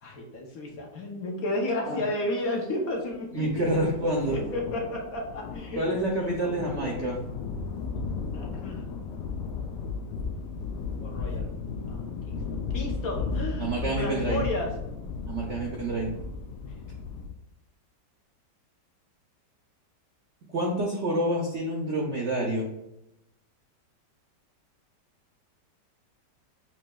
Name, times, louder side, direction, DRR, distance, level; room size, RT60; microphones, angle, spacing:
voice 1, 0.0-4.0 4.3-7.0 8.3-8.9 11.0-11.5 11.9-14.7, left 1 dB, 60° left, -1 dB, 1.1 m, -33 dB
voice 2, 3.3-4.4 5.8-7.2 13.6-14.4 15.3-16.1 20.5-22.7, right 1 dB, 65° right, -1 dB, 0.7 m, -28 dB
sound 1, 3.4-17.3, left 4 dB, 85° left, 1.3 m, -35 dB
7.2 x 3.0 x 2.2 m, 0.88 s
omnidirectional pair, 1.9 m